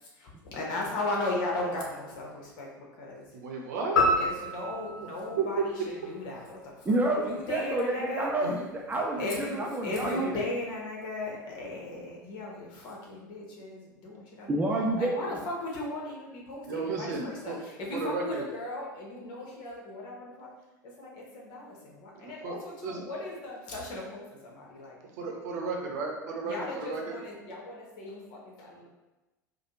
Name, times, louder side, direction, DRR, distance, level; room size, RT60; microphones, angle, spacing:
voice 1, 0.2-3.4 4.2-8.3 9.2-14.6 15.0-20.6 20.8-25.0 26.4-28.9, left 2 dB, 45° left, -2 dB, 1.1 m, -37 dB
voice 2, 3.3-4.0 5.4-5.6 8.4-8.5 16.7-17.6 17.9-18.4 22.2-22.6 22.8-23.0 25.2-27.2, right 4 dB, 60° right, 0 dB, 0.8 m, -33 dB
sound 1, 4.0-6.4, left 1 dB, 70° left, 0.9 m, -29 dB
voice 3, 6.9-10.4 14.5-15.2 17.0-17.1, right 1 dB, 15° right, -1 dB, 0.5 m, -29 dB
4.8 x 2.2 x 2.9 m, 1.0 s
figure-of-eight pair, 80°, 10 cm